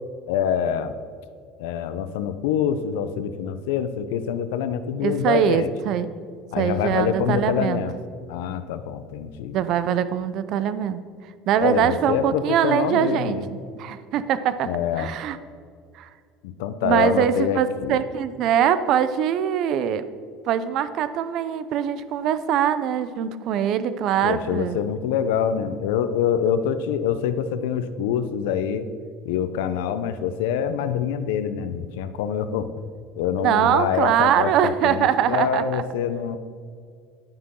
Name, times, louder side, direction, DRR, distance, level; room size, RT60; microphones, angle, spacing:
voice 1, 0.2-0.9 1.6-5.7 6.5-7.9 8.3-9.6 11.6-13.4 14.6-15.1 16.4-18.0 24.2-28.9 29.2-32.7 33.2-36.4, left 8 dB, 90° left, 11 dB, 0.7 m, -25 dB
voice 2, 5.0-6.1 6.6-7.8 9.5-11.0 11.5-14.7 15.0-15.4 16.0-16.1 16.8-20.0 20.5-24.8 33.4-35.8, right 9 dB, 50° right, 13 dB, 0.6 m, -22 dB
11.0 x 9.7 x 3.8 m, 2.2 s
cardioid pair, 140°, 0 cm